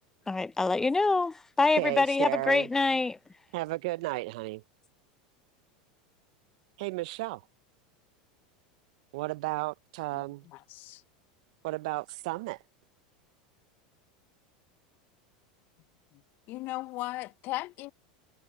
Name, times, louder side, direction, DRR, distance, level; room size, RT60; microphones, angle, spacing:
voice 1, 0.3-3.2, left 3 dB, 10° left, 0.4 m, -25 dB
voice 2, 1.8-2.7 3.5-4.6 6.8-7.4 9.1-10.5 11.6-12.6, right 20 dB, 70° right, 0.6 m, -33 dB
voice 3, 10.1-11.0 16.1-16.2 16.5-17.9, left 18 dB, 50° left, 0.6 m, -37 dB
hypercardioid pair, 100°, 4 cm